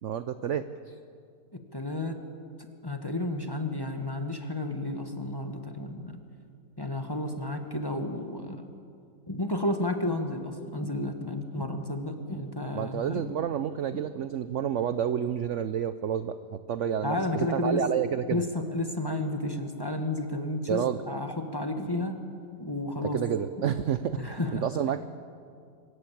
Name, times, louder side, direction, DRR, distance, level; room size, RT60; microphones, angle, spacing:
voice 1, 0.0-0.9 12.7-18.4 20.7-21.0 23.1-25.0, right 9 dB, 70° right, 12 dB, 0.7 m, -30 dB
voice 2, 1.5-2.2 2.6-6.2 6.8-8.6 9.3-13.3 13.9-14.0 17.0-17.8 18.3-22.2 22.6-23.2 24.2-24.7, left 1 dB, 15° left, 5 dB, 1.3 m, -32 dB
25.5 x 15.0 x 8.7 m, 2.3 s
omnidirectional pair, 2.0 m